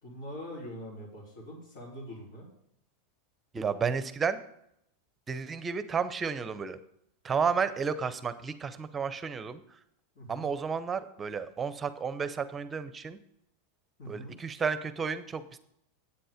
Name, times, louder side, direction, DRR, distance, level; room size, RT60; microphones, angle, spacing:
voice 1, 0.0-2.5 10.2-10.5 14.0-14.3, equal, 70° left, -6 dB, 3.5 m, -43 dB
voice 2, 3.5-4.4 5.3-6.8 7.2-9.6 10.3-13.2 14.1-15.6, right 6 dB, 20° right, 13 dB, 0.7 m, -32 dB
8.6 x 7.7 x 5.0 m, 0.74 s
supercardioid pair, 125°, 0 cm